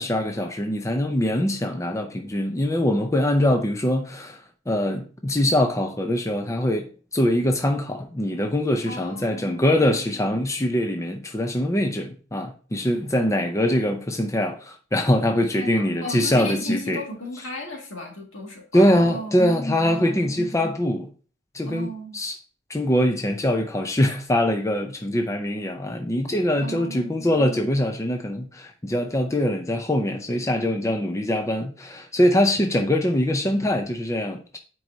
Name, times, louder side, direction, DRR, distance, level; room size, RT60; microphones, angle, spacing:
voice 1, 0.0-4.4 4.7-17.0 18.7-21.1 21.5-21.9 22.1-22.3 22.7-34.6, left 1 dB, 15° left, 0.6 m, -23 dB
voice 2, 8.9-9.9 15.6-19.5 19.8-20.3 21.6-22.2 26.6-27.3, equal, 75° left, 2.3 m, -36 dB
9.1 x 4.7 x 2.8 m
head